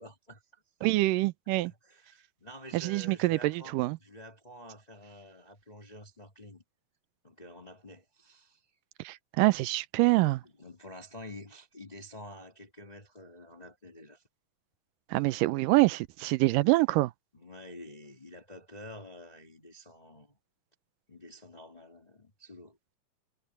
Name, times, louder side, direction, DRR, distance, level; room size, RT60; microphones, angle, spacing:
voice 1, 0.0-0.9 1.6-6.6 7.2-8.6 10.4-14.2 15.4-15.5 17.3-20.4 21.1-22.8, left 1 dB, 15° left, 2.2 m, -49 dB
voice 2, 0.8-1.7 2.7-4.0 9.0-10.4 15.1-17.1, right 20 dB, 85° right, 2.3 m, -25 dB
omnidirectional pair, 3.8 m